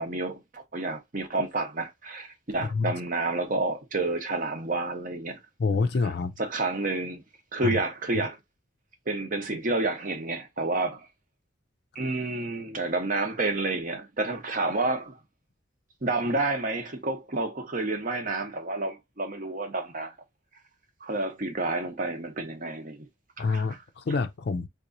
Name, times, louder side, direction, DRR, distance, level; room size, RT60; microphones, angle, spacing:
voice 1, 0.0-5.4 6.4-7.2 7.5-8.4 9.1-11.1 11.9-15.2 16.0-20.1 21.0-23.1 23.4-23.7, right 2 dB, 45° right, 0.7 m, -29 dB
voice 2, 2.6-2.9 5.6-6.3 7.6-7.8 23.4-24.7, left 4 dB, 55° left, 0.4 m, -27 dB
3.7 x 2.9 x 2.6 m
head